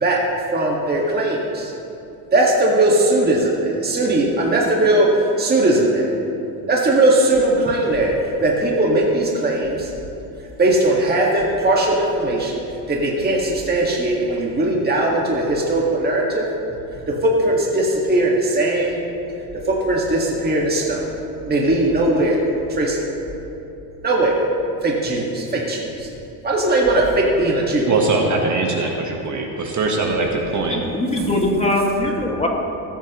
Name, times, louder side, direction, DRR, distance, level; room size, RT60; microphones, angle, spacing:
voice 1, 0.5-1.7 2.3-5.1 5.4-6.1 6.7-8.1 8.4-9.9 10.6-12.6 12.9-16.4 17.1-19.1 19.7-21.1 21.5-22.4 22.7-23.0 24.0-24.4 24.8-26.1 26.4-27.9, right 1 dB, 20° right, -3 dB, 1.8 m, -19 dB
voice 2, 27.8-30.8, right 3 dB, 40° right, 1 dB, 1.4 m, -21 dB
voice 3, 30.7-32.5, left 1 dB, 15° left, -1 dB, 2.0 m, -21 dB
19.5 x 9.0 x 3.1 m, 2.9 s
supercardioid pair, 100°, 44 cm